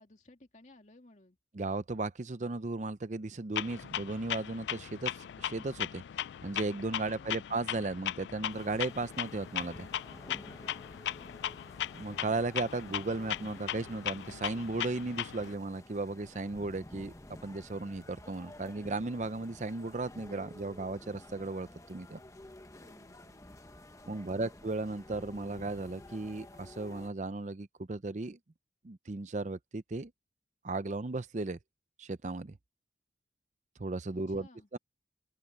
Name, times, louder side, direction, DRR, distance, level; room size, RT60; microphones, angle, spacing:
voice 1, 0.0-1.4 7.0-7.4 10.9-11.5 22.8-23.4 34.1-34.7, left 2 dB, 40° left, 2.4 m, -59 dB
voice 2, 1.5-6.0 6.4-9.9 11.9-22.2 24.1-28.4 28.8-30.1 30.6-31.6 32.0-32.6 33.8-34.5 34.7-34.8, right 3 dB, 40° right, 0.6 m, -36 dB
Clock, 3.6-15.6, left 11 dB, 80° left, 0.3 m, -38 dB
sound 1, 8.5-27.1, left 1 dB, 20° left, 1.1 m, -52 dB
open air
head